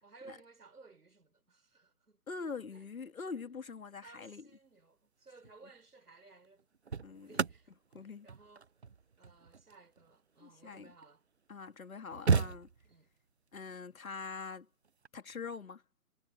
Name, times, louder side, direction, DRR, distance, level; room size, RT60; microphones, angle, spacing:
voice 1, 0.0-2.2 2.7-2.8 4.0-6.7 7.1-7.7 8.2-8.7 9.2-11.2 12.8-13.1, right 3 dB, 85° right, 4.9 m, -58 dB
voice 2, 2.3-4.5 7.0-7.4 7.9-8.3 10.4-10.9 11.5-12.7 13.5-14.7 15.1-15.8, left 5 dB, 65° left, 2.7 m, -44 dB
sound 1, 5.3-5.6 6.4-11.0 11.6-11.7 11.9-13.2 14.8-15.1, right 5 dB, 45° right, 0.6 m, -35 dB
hypercardioid pair, 170°, 44 cm